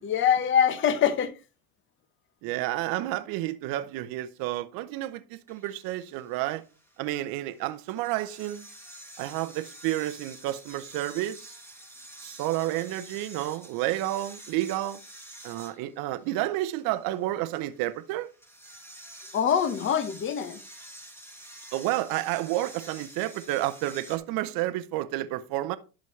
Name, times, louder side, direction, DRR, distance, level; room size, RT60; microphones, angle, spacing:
voice 1, 0.0-1.3 19.3-20.6, left 8 dB, 25° left, 0.9 m, -24 dB
voice 2, 2.4-6.6 7.0-8.7 9.2-11.5 12.2-15.0 15.4-18.3 21.7-25.8, right 15 dB, 50° right, 0.8 m, -30 dB
sound 1, 5.5-24.2, right 1 dB, 5° left, 2.0 m, -49 dB
11.0 x 6.3 x 3.1 m
supercardioid pair, 110°, 45 cm